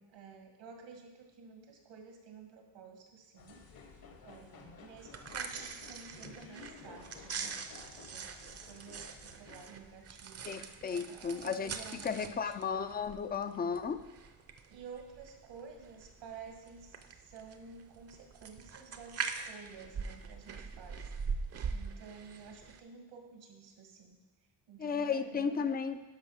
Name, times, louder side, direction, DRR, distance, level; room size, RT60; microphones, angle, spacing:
voice 1, 0.0-3.6 4.2-7.6 7.9-12.5 14.7-21.1 21.7-24.2 24.7-25.7, right 5 dB, 85° right, 2 dB, 2.1 m, -52 dB
sound 1, 3.4-9.6, left 5 dB, 55° left, 1.3 m, -54 dB
sound 2, 5.0-22.8, right 5 dB, 35° right, 0.7 m, -43 dB
voice 2, 10.5-11.7 12.0-14.0 24.8-26.0, left 6 dB, 25° left, 11 dB, 0.4 m, -34 dB
11.5 x 5.5 x 5.7 m, 1.1 s
cardioid pair, 140°, 43 cm